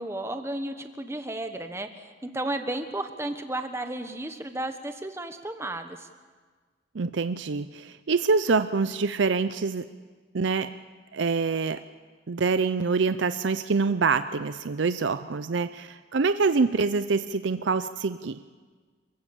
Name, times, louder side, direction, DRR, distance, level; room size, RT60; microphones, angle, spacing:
voice 1, 0.0-6.1, right 1 dB, 15° right, 7 dB, 1.2 m, -33 dB
voice 2, 6.9-9.9 10.3-10.7 11.1-11.8 12.3-18.4, right 4 dB, 75° right, 11 dB, 0.5 m, -25 dB
27.0 x 15.5 x 7.1 m, 1.4 s
head